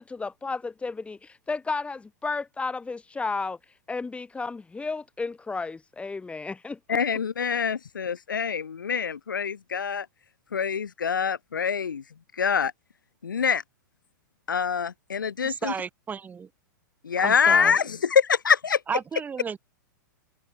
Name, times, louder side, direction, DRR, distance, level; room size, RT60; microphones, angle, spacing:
voice 1, 0.0-3.6 3.9-7.0, left 4 dB, 10° left, 3.3 m, -33 dB
voice 2, 6.9-10.1 10.5-12.0 12.3-12.7 13.2-13.6 14.5-15.7 17.0-18.8, left 6 dB, 85° left, 1.3 m, -25 dB
voice 3, 15.4-16.5 17.2-17.8 18.9-19.6, right 6 dB, 15° right, 1.0 m, -32 dB
hypercardioid pair, 105°, 10 cm